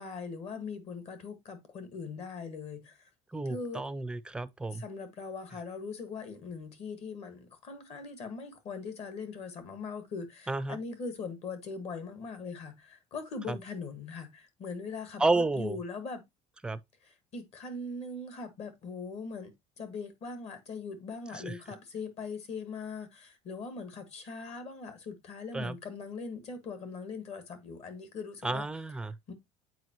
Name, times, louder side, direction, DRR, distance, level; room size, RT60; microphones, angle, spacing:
voice 1, 0.0-3.1 3.5-3.8 4.7-16.2 17.0-19.5 19.8-28.6 29.3-29.4, left 4 dB, 50° left, 1.6 m, -41 dB
voice 2, 3.3-4.8 10.5-10.8 13.5-13.6 15.2-15.8 16.6-16.8 21.3-21.6 25.5-25.8 28.4-29.1, right 2 dB, 5° right, 0.4 m, -31 dB
8.0 x 4.6 x 2.9 m
cardioid pair, 135°, 14 cm